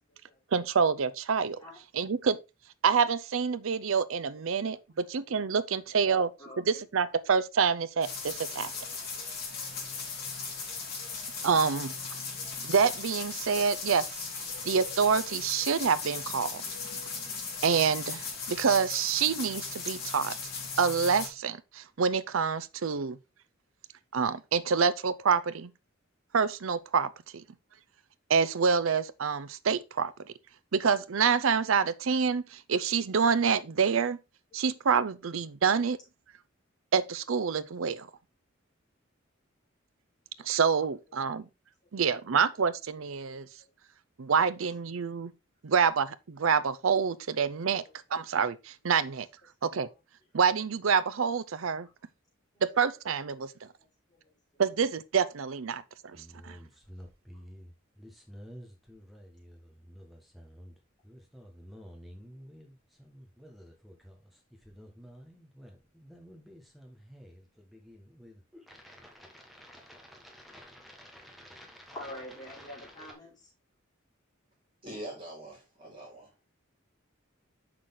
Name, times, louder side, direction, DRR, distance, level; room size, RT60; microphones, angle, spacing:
voice 1, 0.5-1.6 1.9-2.4 2.8-6.3 6.7-8.7 11.4-11.9 12.6-14.2 14.6-16.6 17.6-20.3 20.8-23.2 24.1-25.7 26.3-27.4 28.3-30.3 30.7-34.2 34.5-36.0 36.9-38.1 40.4-41.4 41.9-43.5 44.2-45.3 45.6-47.8 48.1-49.3 49.6-49.9 50.3-51.9 52.6-53.5 54.6-56.2 56.4-56.6, right 6 dB, 70° right, 0.6 m, -27 dB
voice 2, 6.1-6.8 8.5-8.6 11.4-11.5 49.8-49.9 71.9-73.3, left 1 dB, 20° left, 4.5 m, -44 dB
sound 1, 8.0-21.3, left 4 dB, 50° left, 3.1 m, -38 dB
sound 2, 56.1-73.1, equal, ahead, 1.4 m, -51 dB
voice 3, 74.8-76.3, right 1 dB, 30° right, 4.2 m, -43 dB
6.5 x 5.9 x 3.7 m
head